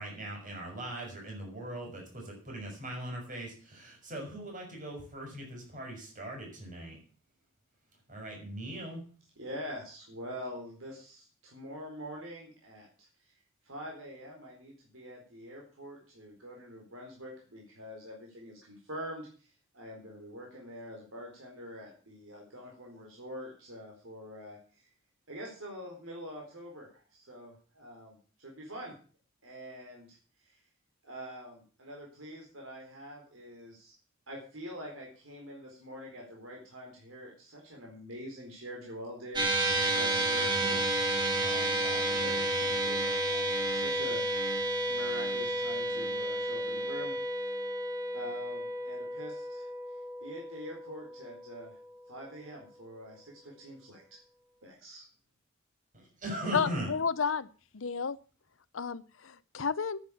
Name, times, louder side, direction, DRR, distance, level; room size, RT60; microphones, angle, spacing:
voice 1, 0.0-7.0 8.1-9.0 55.9-56.9, right 1 dB, 40° right, 1 dB, 6.4 m, -40 dB
voice 2, 9.4-13.1 13.6-19.5 19.7-24.6 25.3-28.9 29.4-30.2 30.4-30.6 31.0-33.9 34.3-40.8 41.3-44.3 44.8-47.6 48.1-49.7 50.2-51.8 52.1-54.2 54.6-55.1, equal, 85° right, -1 dB, 4.3 m, -45 dB
sound 1, 39.3-51.9, right 1 dB, 25° right, 2.2 m, -31 dB
voice 3, 56.5-57.5 57.7-58.2 58.7-60.0, left 5 dB, 80° left, 17 dB, 0.7 m, -31 dB
9.8 x 9.6 x 8.4 m, 0.40 s
head